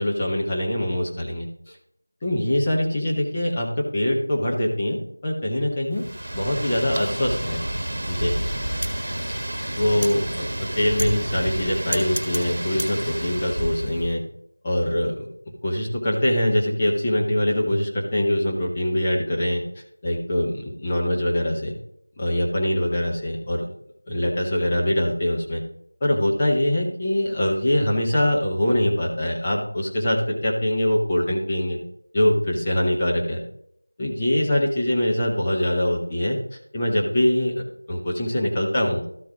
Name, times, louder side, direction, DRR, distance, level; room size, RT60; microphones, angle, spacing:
voice 1, 0.0-1.8 2.2-6.0 6.3-7.6 8.1-8.3 9.8-10.5 10.8-14.2 14.6-21.7 22.2-23.7 24.1-25.6 26.0-31.8 32.1-33.4 34.0-36.4 36.7-37.5 37.9-39.0, left 1 dB, 15° left, -3 dB, 1.1 m, -23 dB
Wind, 5.9-14.1, right 1 dB, 50° right, 1.3 m, -29 dB
13.5 x 4.6 x 3.7 m, 0.70 s
figure-of-eight pair, 175°, 0 cm